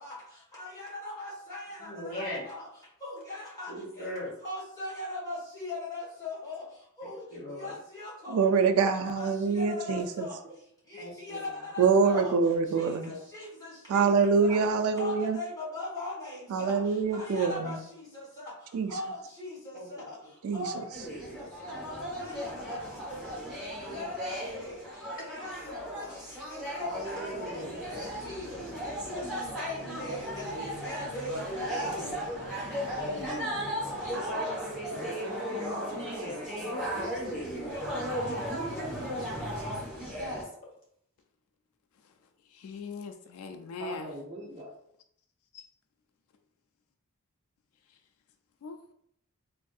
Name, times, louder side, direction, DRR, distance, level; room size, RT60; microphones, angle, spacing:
voice 1, 0.6-2.6 3.0-3.7 4.4-6.6 7.0-7.2 7.6-8.4 8.9-10.3 10.9-12.3 12.8-12.9 13.3-13.5 13.9-14.1 14.4-14.6 15.0-16.7 17.1-17.7 18.9-19.5 20.1-20.2 20.5-20.8 22.2-22.4 22.7-22.9 23.9-24.6 25.3-25.9 26.5-27.6 28.0-28.4 28.8-28.9 29.6-30.4 30.8-31.4 31.7-31.9 33.0-33.4, left 2 dB, 15° left, 1.2 m, -39 dB
voice 2, 1.8-2.4 3.7-4.3 7.3-7.7 11.0-11.6 12.6-13.2 19.7-20.0 23.8-23.9 27.6-28.0 30.5-30.6 31.8-32.1 35.7-36.6 39.2-39.3 39.8-40.4, left 1 dB, 40° left, 1.3 m, -41 dB
voice 3, 8.3-10.3 11.8-13.1 13.9-15.4 16.5-17.8 18.7-18.9 20.4-20.8, right 5 dB, 75° right, 0.3 m, -25 dB
voice 4, 10.1-10.6 26.8-27.7 34.9-36.4 43.8-44.7, right 1 dB, 25° right, 0.6 m, -41 dB
sound 1, 20.9-40.4, equal, 5° right, 1.0 m, -36 dB
voice 5, 42.5-44.1 45.5-45.7 47.9-48.0 48.6-48.9, left 4 dB, 75° left, 0.3 m, -41 dB
3.5 x 2.5 x 2.3 m
head